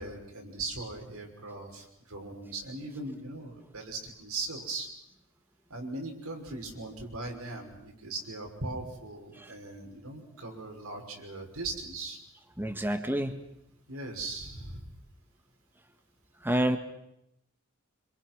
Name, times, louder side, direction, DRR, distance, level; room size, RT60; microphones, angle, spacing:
voice 1, 0.0-4.9 5.7-12.2 13.9-14.8, right 2 dB, 85° right, 2 dB, 5.9 m, -39 dB
voice 2, 12.6-13.4 16.4-16.8, right 1 dB, 10° right, 7 dB, 1.6 m, -28 dB
27.0 x 26.5 x 6.2 m, 0.81 s
head